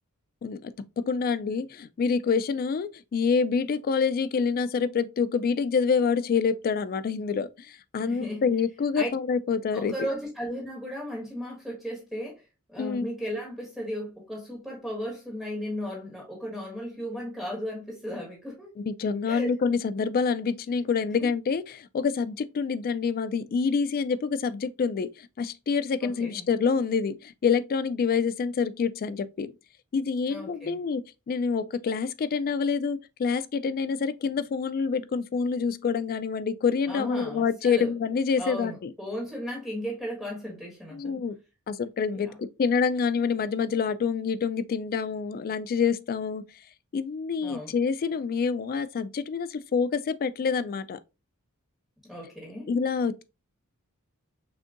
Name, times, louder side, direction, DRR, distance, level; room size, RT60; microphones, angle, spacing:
voice 1, 0.4-9.9 12.8-13.1 18.8-29.5 29.9-38.9 40.9-41.4 41.7-46.5 46.9-51.0 52.7-53.2, left 5 dB, 40° left, 0.3 m, -27 dB
voice 2, 8.0-8.5 9.0-9.1 9.7-12.4 12.7-18.7 19.2-19.5 21.2-21.3 26.0-26.5 30.3-30.8 36.9-37.9 38.4-41.2 42.1-42.4 47.4-47.7 52.1-52.7, equal, ahead, 1.6 m, -35 dB
6.2 x 2.6 x 2.5 m
head